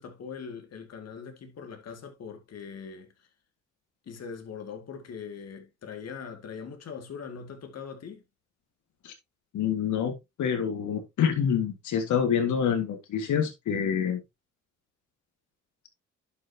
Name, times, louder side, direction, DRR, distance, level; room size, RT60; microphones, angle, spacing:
voice 1, 0.0-3.1 4.1-8.2, left 6 dB, 55° left, 2.4 m, -41 dB
voice 2, 9.5-14.2, left 7 dB, 75° left, 2.1 m, -27 dB
11.0 x 6.1 x 2.9 m
cardioid pair, 90°, 30 cm